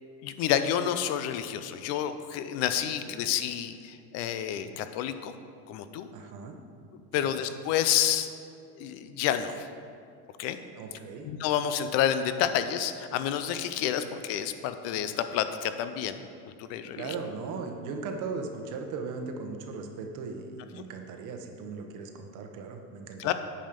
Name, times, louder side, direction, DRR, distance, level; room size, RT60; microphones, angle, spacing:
voice 1, 0.2-5.3 5.7-6.1 7.1-8.3 8.8-9.7 10.4-10.6 11.2-17.1 23.2-23.3, left 10 dB, 35° left, 10 dB, 0.4 m, -29 dB
voice 2, 6.1-6.6 7.1-7.4 10.8-11.3 16.9-23.3, right 4 dB, 40° right, 4 dB, 1.0 m, -38 dB
8.6 x 5.5 x 5.2 m, 2.3 s
supercardioid pair, 140°, 45 cm